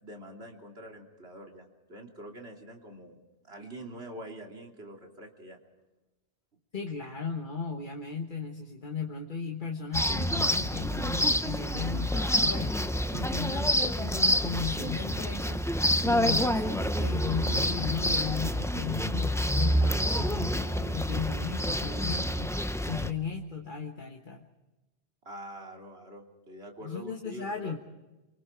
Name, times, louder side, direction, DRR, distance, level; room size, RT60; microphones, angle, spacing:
voice 1, 0.0-5.6 25.2-27.8, right 1 dB, 70° right, 1 dB, 3.3 m, -45 dB
voice 2, 6.7-12.8 13.1-15.6 16.0-24.5 26.8-27.8, left 5 dB, 50° left, 2 dB, 1.6 m, -36 dB
sound 1, 9.9-23.1, equal, 5° left, 0.6 m, -28 dB
28.5 x 24.5 x 4.5 m, 1.1 s
omnidirectional pair, 1.1 m